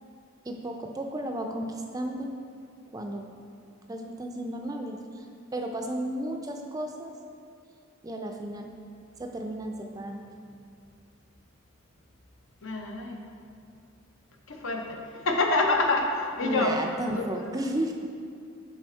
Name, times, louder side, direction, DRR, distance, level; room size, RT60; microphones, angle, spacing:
voice 1, 0.4-2.3 2.9-3.3 3.9-5.3 5.5-7.1 8.0-8.7 9.2-10.2 16.4-17.9, right 1 dB, 20° right, 3 dB, 0.4 m, -33 dB
voice 2, 12.6-13.2 14.5-15.0 15.2-16.8 17.2-17.3, left 2 dB, 75° left, 2 dB, 0.7 m, -26 dB
6.2 x 4.9 x 4.3 m, 2.4 s
head